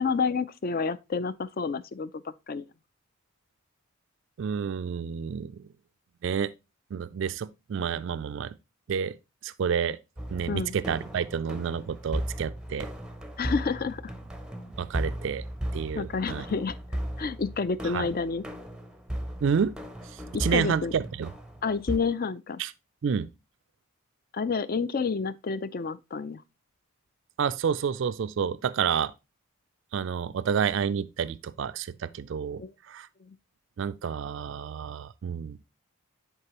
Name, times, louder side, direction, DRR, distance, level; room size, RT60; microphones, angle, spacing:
voice 1, 0.0-2.7 10.5-10.8 13.4-14.1 16.0-16.8 17.2-18.4 20.3-20.9 21.6-22.6 24.3-26.4 32.6-32.7 33.3-33.4, left 5 dB, 40° left, 0.4 m, -29 dB
voice 2, 4.4-5.6 6.2-6.5 6.9-8.5 8.9-9.2 9.4-10.0 10.3-12.9 14.8-15.4 15.7-16.4 17.8-18.1 19.4-19.7 20.4-21.3 22.6-22.7 23.0-23.3 27.4-29.1 29.9-32.6 32.9-33.1 33.8-35.6, right 7 dB, 55° right, 0.3 m, -29 dB
sound 1, 10.2-22.0, equal, 5° right, 0.6 m, -36 dB
9.7 x 4.6 x 2.9 m
head